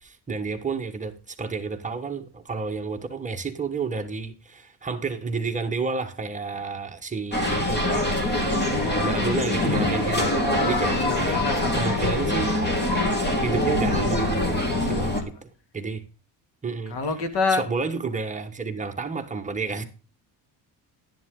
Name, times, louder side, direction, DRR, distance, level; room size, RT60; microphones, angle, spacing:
voice 1, 0.0-8.1 8.3-8.5 8.8-11.4 11.8-12.5 13.3-16.0 16.6-17.0 17.5-19.8, right 4 dB, 20° right, 1.2 m, -31 dB
sound 1, 7.3-15.2, left 1 dB, 25° left, 2.5 m, -24 dB
voice 2, 10.5-12.1 14.7-15.3 16.9-17.6, left 4 dB, 65° left, 2.5 m, -28 dB
11.5 x 10.5 x 3.8 m
cardioid pair, 145°, 42 cm